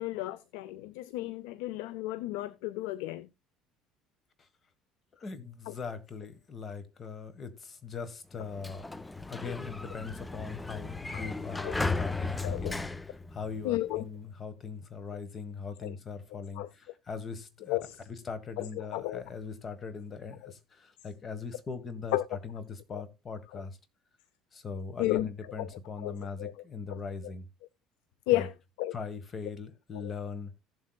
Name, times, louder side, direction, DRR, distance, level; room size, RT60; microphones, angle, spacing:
voice 1, 0.0-3.3 5.7-5.8 11.1-11.3 11.6-11.7 12.4-12.7 13.6-14.1 15.8-16.0 16.6-16.7 17.7-18.0 18.6-19.2 20.4-20.5 22.1-22.2 22.9-23.0 23.5-23.6 25.0-25.3 25.6-25.7 26.0-26.5 26.9-27.0 28.3-28.5 28.8-29.0 29.9-30.1, left 16 dB, 90° left, 0.5 m, -33 dB
voice 2, 5.2-8.9 9.3-12.9 13.3-17.8 18.1-22.2 22.4-23.8 24.5-27.5 28.3-28.5 28.9-30.5, left 5 dB, 35° left, 1.4 m, -40 dB
Sliding door, 8.3-14.0, left 3 dB, 10° left, 0.4 m, -35 dB
16.0 x 7.6 x 2.3 m
cardioid pair, 115°, 0 cm